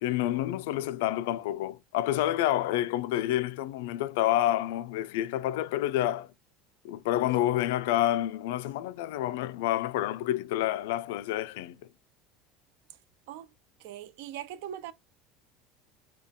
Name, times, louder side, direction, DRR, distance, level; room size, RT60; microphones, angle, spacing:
voice 1, 0.0-6.3 6.8-11.8, left 13 dB, 85° left, 0.3 m, -28 dB
voice 2, 13.8-14.9, right 11 dB, 70° right, 0.4 m, -40 dB
3.7 x 2.3 x 3.5 m
cardioid pair, 175°, 0 cm